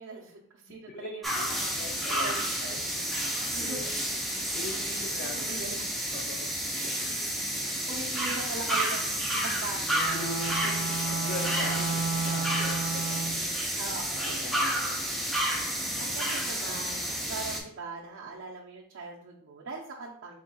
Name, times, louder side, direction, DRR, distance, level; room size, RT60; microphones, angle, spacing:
voice 1, 0.0-1.7 2.1-3.2 3.5-3.9 4.4-4.5 4.8-5.9 6.7-7.3 7.6-9.1 9.4-11.3 11.7-12.3 13.7-14.6 16.0-20.4, right 3 dB, 55° right, -3 dB, 0.5 m, -42 dB
voice 2, 0.7-1.2 1.6-2.4 2.6-2.8 3.6-4.0 4.3-5.6 6.1-6.4 9.3-9.7 10.1-13.6 14.1-16.1, left 2 dB, 40° left, -1 dB, 0.5 m, -42 dB
sound 1, 1.2-17.6, right 1 dB, ahead, 0.7 m, -30 dB
Bowed string instrument, 9.8-13.6, right 4 dB, 70° left, 1.2 m, -33 dB
4.3 x 3.7 x 2.3 m, 0.65 s
head